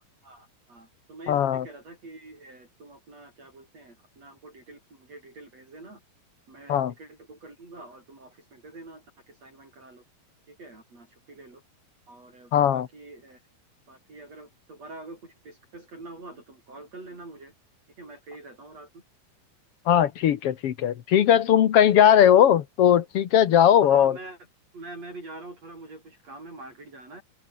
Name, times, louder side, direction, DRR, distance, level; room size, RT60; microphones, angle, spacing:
voice 1, 0.0-6.0 6.5-10.0 10.5-11.6 12.1-13.4 13.9-17.5 18.0-19.0 22.0-22.2 23.5-24.4 24.7-27.2, right 2 dB, 40° right, 8.7 m, -45 dB
voice 2, 1.3-1.6 6.7-6.9 12.5-12.9 19.9-24.2, left 10 dB, 75° left, 1.3 m, -19 dB
open air
omnidirectional pair, 4.5 m